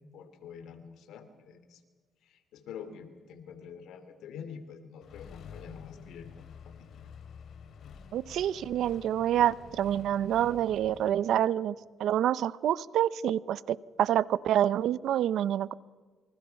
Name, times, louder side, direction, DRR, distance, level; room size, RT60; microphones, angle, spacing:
voice 1, 0.1-1.8 2.2-6.9, left 7 dB, 80° left, 10 dB, 2.9 m, -46 dB
Accelerating revving vroom, 5.0-11.2, left 6 dB, 65° left, 2.9 m, -49 dB
voice 2, 8.1-11.7 12.0-15.7, right 11 dB, 75° right, 18 dB, 0.7 m, -27 dB
28.0 x 24.0 x 5.8 m, 1.4 s
cardioid pair, 90°, 0 cm